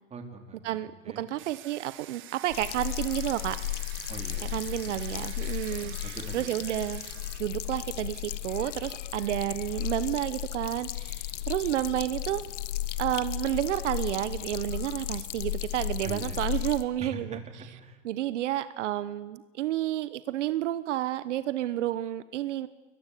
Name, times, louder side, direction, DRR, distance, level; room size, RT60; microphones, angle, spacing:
voice 1, 0.1-0.8 1.0-1.2 4.1-4.5 4.9-5.3 5.7-6.5 16.0-16.5 17.0-18.0, right 3 dB, 20° right, 4 dB, 3.9 m, -43 dB
voice 2, 1.2-3.6 4.4-7.0 7.4-12.4 13.0-17.4 18.0-22.7, right 13 dB, 75° right, 14 dB, 1.1 m, -30 dB
Domestic sounds home sounds, 1.4-7.4, right 15 dB, 35° right, 1.4 m, -47 dB
sound 1, 2.5-16.8, left 15 dB, 80° left, 1.6 m, -35 dB
29.0 x 22.0 x 8.5 m, 1.2 s
supercardioid pair, 140°, 36 cm